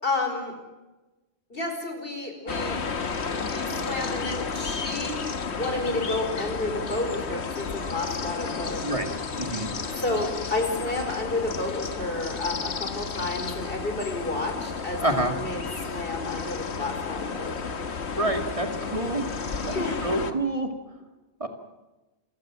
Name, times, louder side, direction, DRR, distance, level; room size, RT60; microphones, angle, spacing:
voice 1, 0.0-0.5 1.5-2.8 3.3-5.1 5.6-8.8 10.0-17.6 19.6-20.0, left 2 dB, 60° left, 4 dB, 5.1 m, -31 dB
sound 1, 2.5-20.3, left 5 dB, 85° left, 1.6 m, -32 dB
voice 2, 9.3-9.7 15.0-15.3 18.2-19.3 19.6-20.7 21.4-21.5, right 2 dB, 30° right, 5 dB, 2.3 m, -27 dB
28.5 x 16.5 x 7.6 m, 1.1 s
omnidirectional pair, 1.1 m